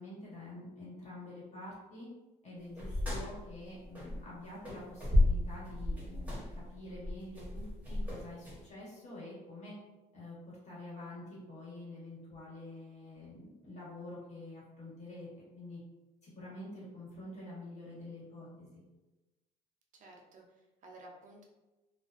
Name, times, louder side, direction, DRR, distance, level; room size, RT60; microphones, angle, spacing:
voice 1, 0.0-2.1 2.4-9.7 10.1-15.3 15.5-15.8 16.2-18.8, left 1 dB, 40° left, -6 dB, 1.2 m, -47 dB
sound 1, 2.8-4.4 4.6-8.6, left 1 dB, 10° right, 0.8 m, -32 dB
voice 2, 19.9-21.4, right 2 dB, 50° right, 0 dB, 0.5 m, -54 dB
2.3 x 2.2 x 2.4 m, 1.1 s
cardioid pair, 110°, 17 cm